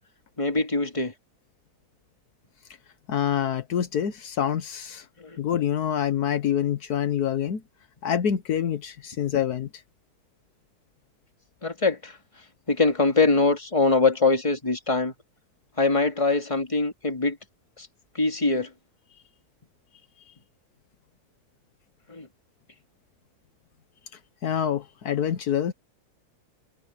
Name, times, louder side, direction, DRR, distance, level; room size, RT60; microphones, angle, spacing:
voice 1, 0.4-1.1 5.2-5.4 11.6-12.1 12.7-15.1 15.8-17.4 18.1-18.7 22.1-22.3, left 3 dB, 20° left, 2.3 m, -23 dB
voice 2, 3.1-5.0 5.4-7.6 8.0-9.7 24.4-25.7, left 9 dB, 75° left, 1.5 m, -26 dB
omnidirectional pair, 1.7 m